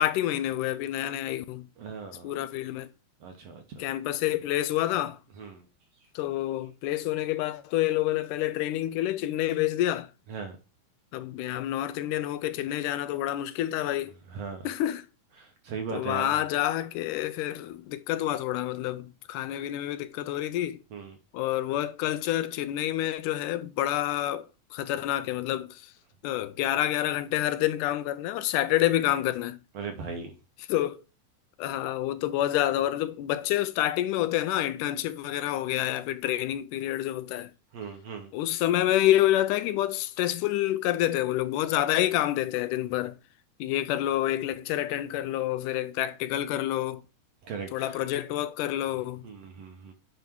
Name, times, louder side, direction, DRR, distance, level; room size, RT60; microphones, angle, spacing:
voice 1, 0.0-1.7 2.2-2.9 3.8-5.2 6.2-10.1 11.1-14.1 14.6-15.1 15.9-20.8 21.3-25.8 26.2-29.6 30.7-31.0 31.6-37.5 38.3-43.2 43.6-47.0 47.7-49.3, left 13 dB, 80° left, 2.1 m, -28 dB
voice 2, 1.8-2.4 3.2-3.8 5.3-5.7 6.0-6.1 10.3-10.6 14.3-14.7 15.4-16.4 20.9-21.2 29.7-30.4 37.7-38.3 47.4-48.0 49.2-49.9, right 5 dB, 65° right, 1.7 m, -38 dB
9.1 x 3.2 x 4.5 m
omnidirectional pair, 3.7 m